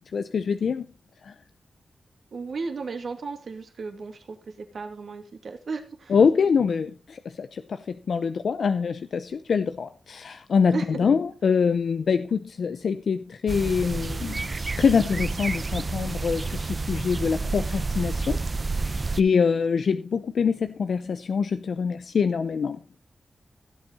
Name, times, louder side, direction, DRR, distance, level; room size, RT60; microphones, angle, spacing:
voice 1, 0.1-0.8 1.2-1.3 6.1-7.8 8.1-14.5 14.8-18.4 18.7-22.8, left 6 dB, 80° left, 10 dB, 0.6 m, -24 dB
voice 2, 2.3-6.1 10.7-11.1, right 4 dB, 70° right, 5 dB, 2.6 m, -35 dB
sound 1, 13.5-19.2, right 3 dB, 40° right, 0.6 m, -29 dB
16.5 x 7.9 x 4.1 m, 0.33 s
wide cardioid pair, 85°, 0 cm